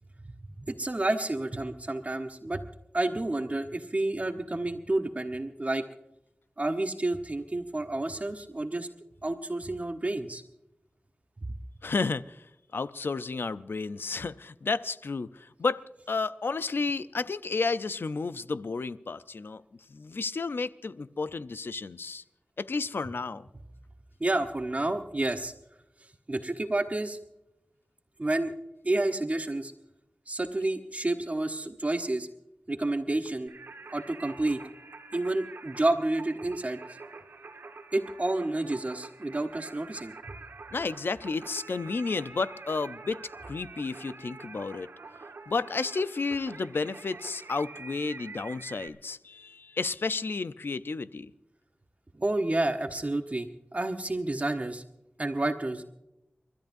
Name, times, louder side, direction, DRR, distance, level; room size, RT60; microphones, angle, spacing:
voice 1, 0.6-2.6 2.9-5.8 6.6-8.9 9.2-10.4 24.2-25.5 26.3-27.2 28.2-28.5 28.8-29.7 30.3-32.3 32.7-33.5 33.9-34.6 35.1-36.8 37.9-40.1 52.2-54.8 55.2-55.8, right 2 dB, 40° right, 1.1 m, -30 dB
voice 2, 11.8-12.5 12.7-19.6 19.9-22.2 22.6-23.5 40.7-44.9 45.5-51.3, left 4 dB, 75° left, 0.6 m, -32 dB
Singing, 33.5-48.9, right 4 dB, 85° right, 1.6 m, -46 dB
30.0 x 13.0 x 2.7 m
wide cardioid pair, 50°, 4 cm